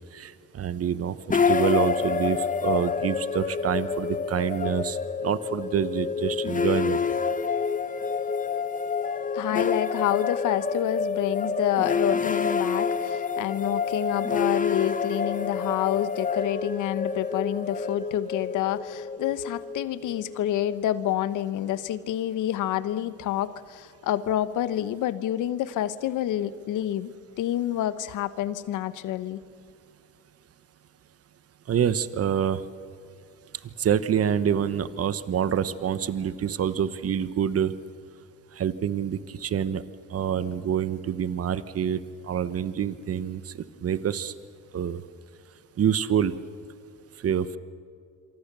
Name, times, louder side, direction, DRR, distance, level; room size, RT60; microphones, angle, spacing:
voice 1, 0.1-7.0 31.7-32.6 33.8-37.7 38.6-39.8 40.1-43.5 43.8-44.3 44.7-45.0 45.8-46.3 47.2-47.6, right 8 dB, 50° right, 14 dB, 1.1 m, -26 dB
sound 1, 1.3-20.4, left 5 dB, 25° left, 1.1 m, -28 dB
voice 2, 9.3-27.1 27.4-29.4, left 12 dB, 85° left, 14 dB, 1.1 m, -28 dB
27.0 x 24.0 x 6.9 m, 2.4 s
cardioid pair, 90°, 30 cm